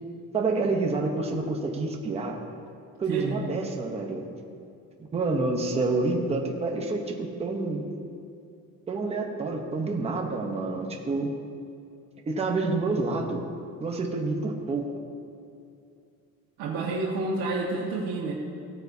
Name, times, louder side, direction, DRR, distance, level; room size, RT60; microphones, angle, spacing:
voice 1, 0.3-2.4 3.0-4.3 5.1-7.8 8.9-11.3 12.3-13.4 13.8-14.9, right 3 dB, 20° right, 1 dB, 0.9 m, -28 dB
voice 2, 16.6-18.3, right 3 dB, 85° right, -5 dB, 1.6 m, -29 dB
16.5 x 8.7 x 2.7 m, 2.5 s
cardioid pair, 180°, 34 cm